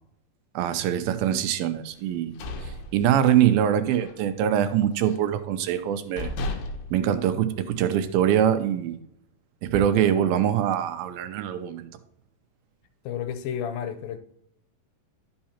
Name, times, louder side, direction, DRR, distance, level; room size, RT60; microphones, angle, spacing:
voice 1, 0.6-2.4 2.9-6.3 6.9-9.0 9.6-11.9, right 10 dB, 85° right, 2.4 m, -23 dB
sound 1, 2.0-3.6 4.0-4.2 4.6-5.3 5.8-5.9 6.2-8.0, left 1 dB, 70° left, 2.0 m, -35 dB
voice 2, 13.1-14.2, left 9 dB, 85° left, 2.5 m, -31 dB
11.5 x 5.6 x 2.8 m
omnidirectional pair, 4.3 m